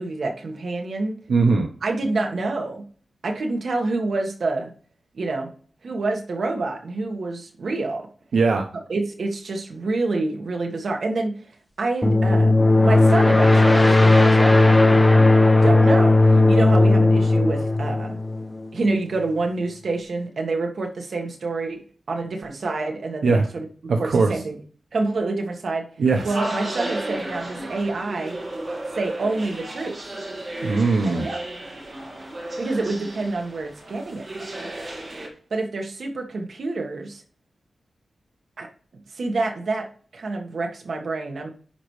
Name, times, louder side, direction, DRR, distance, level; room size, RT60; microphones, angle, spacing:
voice 1, 0.0-1.2 1.8-2.8 3.2-4.7 5.1-5.5 5.8-8.1 8.9-14.6 14.9-15.3 15.6-18.2 18.7-21.8 22.1-23.7 24.0-24.6 24.9-25.8 26.2-28.4 28.9-30.0 31.0-31.4 32.6-34.5 35.5-37.2 38.6-38.7 39.1-39.9 40.1-41.5, right 3 dB, 60° right, 3 dB, 1.5 m, -27 dB
voice 2, 1.3-1.7 8.3-8.7 23.2-23.5 23.9-24.3 26.0-26.2 30.6-31.3, right 4 dB, 85° right, 3 dB, 0.8 m, -19 dB
sound 1, 12.0-18.7, left 2 dB, 15° left, 0.9 m, -16 dB
sound 2, 26.1-35.3, right 1 dB, 40° right, 2.1 m, -33 dB
9.9 x 5.1 x 3.2 m, 0.43 s
wide cardioid pair, 145°, 0 cm